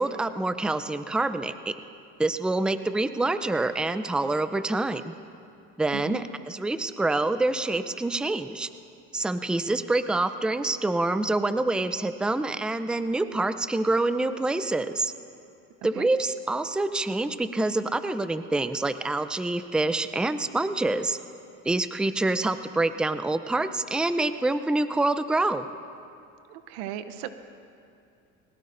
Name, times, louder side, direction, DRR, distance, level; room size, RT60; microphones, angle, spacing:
voice 1, 0.0-1.8 2.2-5.1 5.8-8.7 9.1-15.1 15.8-21.2 21.6-25.6, right 2 dB, 5° right, 11 dB, 0.5 m, -26 dB
voice 2, 5.9-6.2 15.9-16.1 26.5-27.3, right 12 dB, 85° right, 11 dB, 0.8 m, -36 dB
21.0 x 18.5 x 2.6 m, 2.6 s
supercardioid pair, 90°, 32 cm